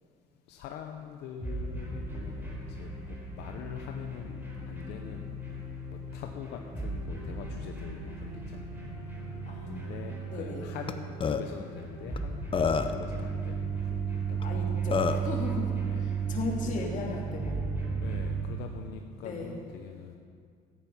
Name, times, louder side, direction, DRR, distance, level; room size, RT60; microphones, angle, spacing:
voice 1, 0.5-9.4 9.7-12.4 12.8-14.9 15.9-16.3 16.7-16.8 18.0-20.2, left 9 dB, 85° left, 4 dB, 0.8 m, -44 dB
sound 1, 1.4-18.4, right 4 dB, 10° right, 3.9 m, -35 dB
voice 2, 9.5-10.7 14.4-17.6 19.2-19.6, left 3 dB, 50° left, -1 dB, 2.7 m, -37 dB
Burping eructation, 10.9-11.0 11.2-11.4 12.2-12.3 12.5-13.0 14.4-14.5 14.9-15.3, left 6 dB, 30° left, 0.7 m, -27 dB
14.0 x 9.1 x 5.7 m, 2.1 s
cardioid pair, 110°, 17 cm